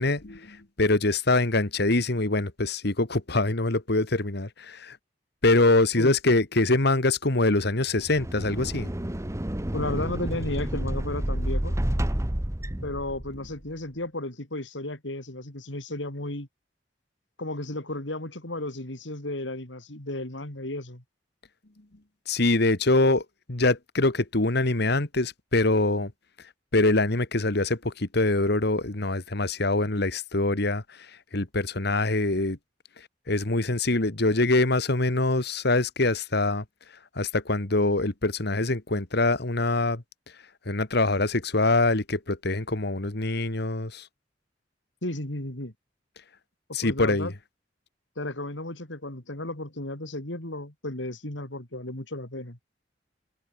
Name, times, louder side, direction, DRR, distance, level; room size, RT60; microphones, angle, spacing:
voice 1, 0.0-5.0 5.4-8.9 22.3-26.1 26.7-30.8 31.3-32.6 33.3-36.6 37.2-40.0 40.7-44.1 46.7-47.3, left 2 dB, 65° left, 2.0 m, -24 dB
sound 1, 7.9-13.5, right 1 dB, 15° right, 1.1 m, -30 dB
voice 2, 9.7-11.8 12.8-16.5 17.4-21.0 45.0-45.7 46.8-47.3 48.2-52.6, left 1 dB, 85° left, 3.8 m, -34 dB
head